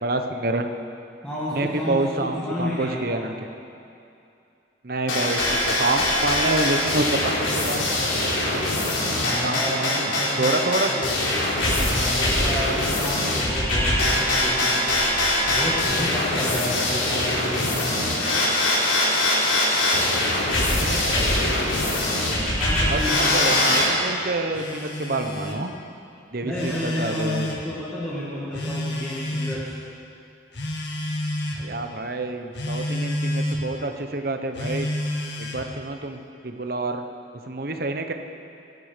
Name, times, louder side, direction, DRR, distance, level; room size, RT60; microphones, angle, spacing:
voice 1, 0.0-0.7 1.5-3.3 4.8-8.6 9.4-11.1 20.0-20.5 20.8-22.6 22.9-25.7 26.3-27.5 31.6-34.9 35.4-37.0 37.5-38.1, right 2 dB, 50° right, 6 dB, 1.0 m, -28 dB
voice 2, 1.2-3.2 9.1-10.5 10.9-11.2 11.6-15.0 15.5-18.2 22.6-23.5 26.4-29.8, left 1 dB, 5° left, -10 dB, 2.0 m, -31 dB
sound 1, 5.1-23.9, left 1 dB, 90° left, 3.8 m, -22 dB
Telephone, 20.5-21.6 22.4-23.6 24.5-25.6 26.5-27.6 28.5-29.7 30.5-31.6 32.5-33.6 34.5-35.7, left 1 dB, 60° left, 1.8 m, -30 dB
19.5 x 11.0 x 5.2 m, 2.6 s
head